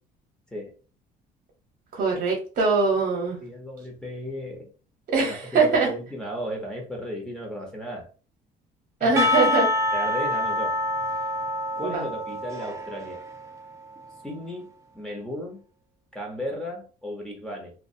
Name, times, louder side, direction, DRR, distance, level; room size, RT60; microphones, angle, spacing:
voice 1, 1.9-3.4 5.1-5.9 9.0-9.7 11.8-12.0, right 4 dB, 55° right, 0 dB, 0.9 m, -22 dB
voice 2, 3.4-4.7 5.2-8.1 9.0-9.2 9.9-10.8 11.8-13.2 14.2-14.7 14.9-15.6 16.1-17.7, equal, 5° left, -2 dB, 0.8 m, -34 dB
Percussion / Church bell, 9.2-14.2, left 2 dB, 20° right, 0.4 m, -27 dB
2.2 x 2.2 x 2.6 m, 0.36 s
cardioid pair, 110°, 17 cm